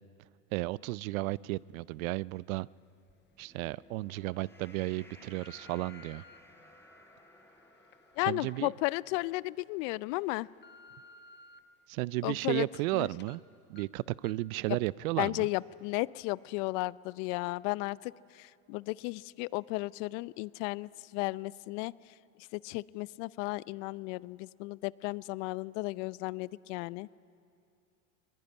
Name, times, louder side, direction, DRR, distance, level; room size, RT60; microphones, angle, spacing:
voice 1, 0.5-2.7 3.4-6.2 8.2-8.7 11.9-13.4 13.7-15.5, right 20 dB, 70° right, 22 dB, 0.6 m, -33 dB
sound 1, 3.1-3.2 3.8-4.1 4.8-6.4 7.0-9.3 9.8-9.9 10.3-11.6 12.0-12.9 13.2-13.4 13.8-13.9 14.2-14.5 14.9-15.0, left 4 dB, 25° left, 1.0 m, -57 dB
sound 2, 3.2-9.7, left 1 dB, 5° left, 4.5 m, -58 dB
voice 2, 8.2-10.5 12.2-12.7 12.9-13.1 14.7-14.8 15.2-27.1, left 22 dB, 55° left, 20 dB, 0.6 m, -34 dB
21.5 x 20.0 x 9.8 m, 2.6 s
hypercardioid pair, 100°, 44 cm